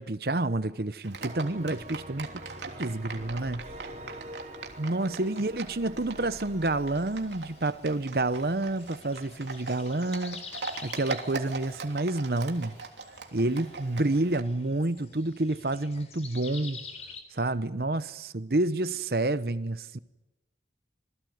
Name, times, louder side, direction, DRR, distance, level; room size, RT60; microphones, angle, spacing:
voice 1, 0.0-2.3 2.8-3.6 4.8-10.5 10.8-12.8 13.3-16.8 17.3-18.0 18.3-20.0, right 2 dB, 60° right, 1.0 m, -29 dB
Livestock farm animals working animals, 1.0-14.4, right 4 dB, 85° right, 3.2 m, -42 dB
sound 1, 1.2-8.8, right 1 dB, 40° right, 4.4 m, -46 dB
voice 2, 2.0-2.9 3.4-4.5 5.0-5.5 17.7-18.6, left 1 dB, 55° left, 6.6 m, -58 dB
sound 2, 6.9-17.2, left 5 dB, 40° left, 3.6 m, -48 dB
27.5 x 21.0 x 9.4 m
head